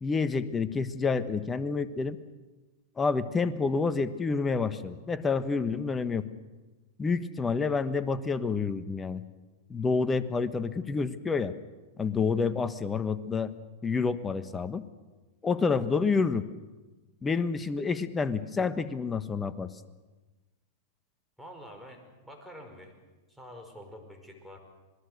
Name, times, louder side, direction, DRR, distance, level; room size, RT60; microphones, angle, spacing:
voice 1, 0.0-2.2 3.0-6.3 7.0-9.2 9.7-11.5 12.0-13.5 13.8-14.8 15.4-16.5 17.2-19.7, left 4 dB, 20° left, 11 dB, 1.3 m, -28 dB
voice 2, 21.4-23.0 23.3-24.6, equal, ahead, 3 dB, 5.2 m, -47 dB
27.0 x 20.5 x 6.6 m, 1.2 s
hypercardioid pair, 105°, 0 cm